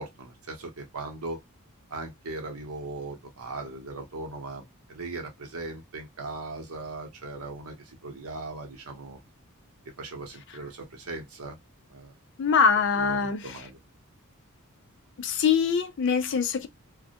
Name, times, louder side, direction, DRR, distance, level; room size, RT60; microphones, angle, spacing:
voice 1, 0.0-1.4 1.9-9.2 10.0-11.6 11.9-12.1 12.9-13.8, right 3 dB, 75° right, 0.8 m, -38 dB
voice 2, 12.4-13.6 15.2-16.7, left 6 dB, 55° left, 0.4 m, -24 dB
2.2 x 2.1 x 2.7 m
head